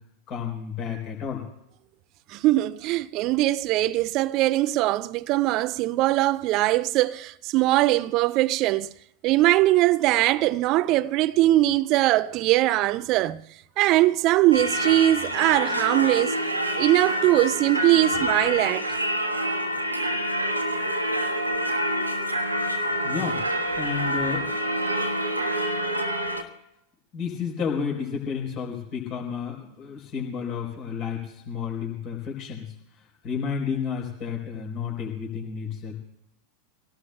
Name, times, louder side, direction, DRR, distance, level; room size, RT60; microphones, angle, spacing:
voice 1, 0.3-1.4 23.0-23.4 23.8-24.5 27.1-32.7 33.2-36.0, left 6 dB, 35° left, 4.0 m, -31 dB
voice 2, 2.3-8.9 9.2-13.5 13.8-16.4 16.8-18.9, right 16 dB, 40° right, 0.5 m, -21 dB
Singing / Church bell, 14.5-26.4, equal, 85° right, 1.4 m, -27 dB
26.0 x 18.0 x 2.3 m
figure-of-eight pair, 90°, 0 cm